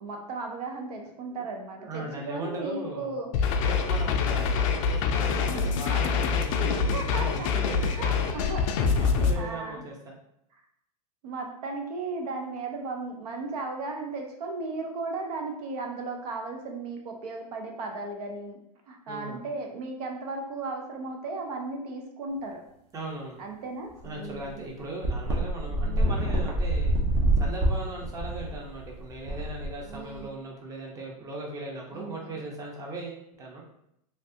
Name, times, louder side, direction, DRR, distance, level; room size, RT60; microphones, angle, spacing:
voice 1, 0.0-3.3 4.0-4.4 5.4-5.7 6.6-7.5 7.8-9.8 11.2-18.6 18.9-22.6 23.4-24.6 25.7-26.3 29.8-30.4 31.9-32.4, right 3 dB, 75° right, 3 dB, 0.7 m, -36 dB
voice 2, 1.8-3.2 3.6-8.4 9.0-10.2 19.1-19.4 22.9-23.4 24.0-27.0 27.4-33.6, right 2 dB, 15° right, -1 dB, 0.6 m, -38 dB
sound 1, 3.3-9.3, left 5 dB, 50° left, 0.4 m, -25 dB
sound 2, 24.0-24.1 24.4-24.5 25.0-30.2, right 1 dB, 50° right, 0.9 m, -26 dB
3.2 x 2.5 x 2.7 m, 0.77 s
hypercardioid pair, 130°, 20 cm